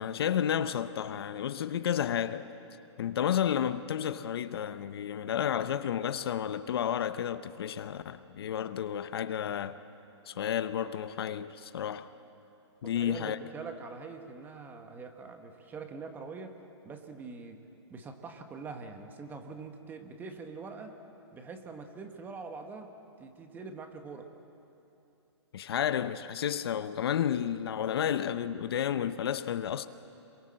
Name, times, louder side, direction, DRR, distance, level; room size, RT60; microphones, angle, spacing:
voice 1, 0.0-2.5 3.0-9.8 10.3-12.1 12.8-13.4 25.5-29.9, left 9 dB, 55° left, 0.9 m, -31 dB
voice 2, 12.8-16.6 16.8-17.6 17.9-21.0 21.3-22.9 23.2-24.3, right 4 dB, 10° right, 1.5 m, -44 dB
26.5 x 23.0 x 7.7 m
hypercardioid pair, 155°, 15 cm